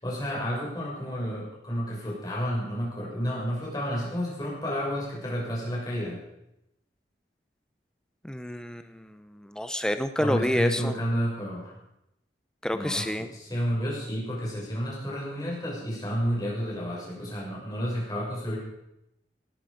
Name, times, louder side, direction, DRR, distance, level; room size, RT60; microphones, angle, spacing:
voice 1, 0.0-6.2 10.2-11.7 12.7-18.6, equal, 20° left, -4 dB, 6.4 m, -31 dB
voice 2, 8.2-10.9 12.6-13.3, equal, 5° left, 9 dB, 0.7 m, -29 dB
18.0 x 12.5 x 5.2 m, 0.85 s
head